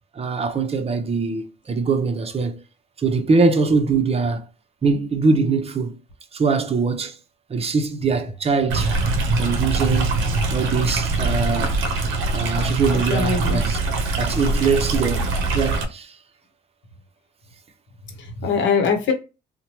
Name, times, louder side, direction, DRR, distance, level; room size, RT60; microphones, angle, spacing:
voice 1, 0.2-2.6 3.0-4.5 4.8-6.0 6.3-7.2 7.5-8.9 9.4-10.2 10.5-11.8 12.3-13.8 14.2-15.3 15.5-16.2, right 4 dB, 30° right, 0.6 m, -22 dB
Stream, 8.7-15.8, right 3 dB, 80° right, 0.6 m, -23 dB
voice 2, 13.1-13.6 18.2-19.1, left 5 dB, 70° left, 0.9 m, -22 dB
2.9 x 2.1 x 2.9 m
cardioid pair, 90°, 20 cm